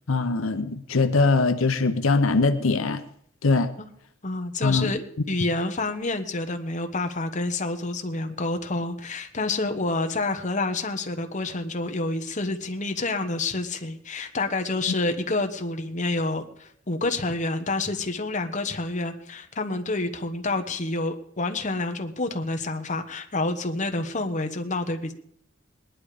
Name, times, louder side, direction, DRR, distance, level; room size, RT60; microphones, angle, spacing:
voice 1, 0.1-3.0 3.4-3.7 4.6-4.9, left 3 dB, 80° left, 8 dB, 0.8 m, -22 dB
voice 2, 4.2-25.1, left 2 dB, 35° left, 5 dB, 1.2 m, -28 dB
20.0 x 10.5 x 5.0 m, 0.68 s
head